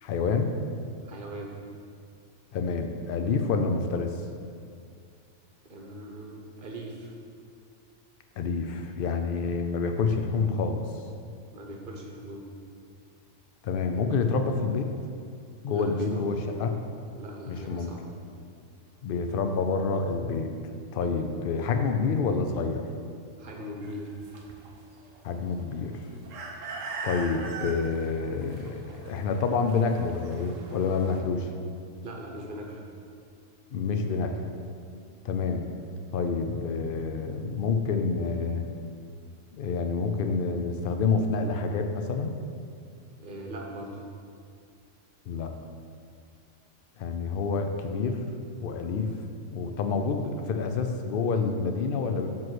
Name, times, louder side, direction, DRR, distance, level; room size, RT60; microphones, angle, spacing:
voice 1, 0.0-0.5 2.5-4.1 8.4-10.9 13.6-14.9 15.6-16.7 17.5-17.9 19.0-20.5 20.9-22.8 25.2-26.0 27.0-31.5 33.7-34.5 35.2-35.7 36.1-38.7 39.5-42.3 45.3-45.5 47.0-48.2 48.6-49.2 49.5-52.3, left 4 dB, 60° left, 5 dB, 0.6 m, -28 dB
voice 2, 1.0-1.6 5.7-7.1 11.5-12.5 15.7-16.7 17.1-18.0 23.4-24.1 32.0-32.8 43.2-44.0, right 1 dB, 45° right, 0 dB, 1.0 m, -40 dB
sound 1, 23.8-31.2, right 3 dB, 75° right, 1.1 m, -41 dB
7.5 x 3.1 x 6.1 m, 2.3 s
omnidirectional pair, 1.4 m